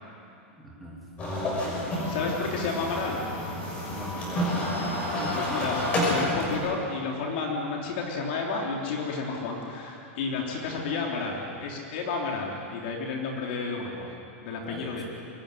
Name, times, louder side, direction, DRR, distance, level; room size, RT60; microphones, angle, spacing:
voice 1, 0.6-1.0 3.9-4.7 5.1-5.4 14.6-15.0, right 1 dB, ahead, -4 dB, 2.8 m, -42 dB
sound 1, 1.2-6.6, left 1 dB, 15° left, 5.9 m, -29 dB
voice 2, 2.0-3.2 5.3-14.1 14.4-15.0, left 4 dB, 45° left, -1 dB, 3.4 m, -31 dB
23.5 x 18.5 x 9.9 m, 2.6 s
supercardioid pair, 180°, 7 cm